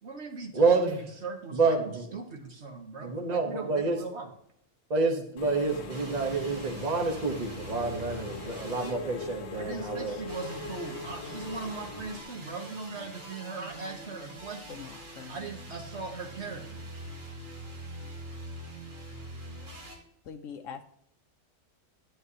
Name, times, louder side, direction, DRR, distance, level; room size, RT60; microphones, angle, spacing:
voice 1, 0.0-4.3 9.5-14.8 15.3-16.9, right 4 dB, 60° right, 3 dB, 1.3 m, -40 dB
voice 2, 0.5-1.0 1.5-2.1 3.0-4.0 4.9-10.2, right 4 dB, 35° right, 2 dB, 1.0 m, -28 dB
Engine / Mechanisms, 5.4-12.2, left 4 dB, 60° left, 1.1 m, -41 dB
sound 1, 5.9-9.6 10.3-20.0, right 1 dB, 75° right, 2.6 m, -44 dB
voice 3, 14.7-15.4 20.2-20.8, left 7 dB, 85° left, 6 dB, 1.0 m, -43 dB
10.0 x 9.5 x 2.8 m, 0.72 s
omnidirectional pair, 1.3 m